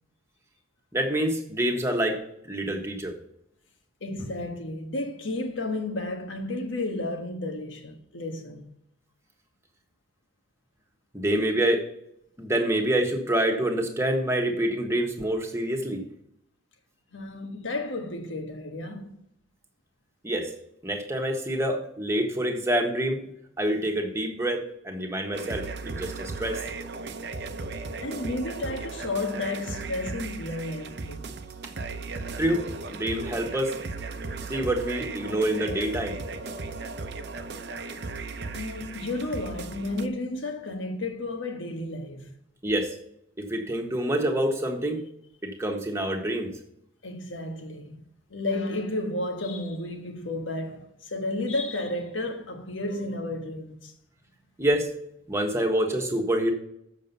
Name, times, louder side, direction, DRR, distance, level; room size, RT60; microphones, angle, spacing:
voice 1, 0.9-2.2 2.5-3.1 11.1-11.8 12.4-16.0 20.2-20.5 20.8-23.2 23.6-26.6 32.4-32.7 32.9-33.8 34.5-36.2 42.6-43.0 43.4-45.0 45.4-46.5 54.6-54.9 55.3-56.5, right 1 dB, 15° right, 1.4 m, -26 dB
voice 2, 4.0-8.7 17.1-19.2 28.0-31.3 38.5-42.4 47.0-48.0 48.3-53.9, left 2 dB, 80° left, 1.4 m, -32 dB
sound 1, 25.3-40.1, right 3 dB, 60° right, 0.7 m, -36 dB
7.6 x 6.5 x 5.4 m
head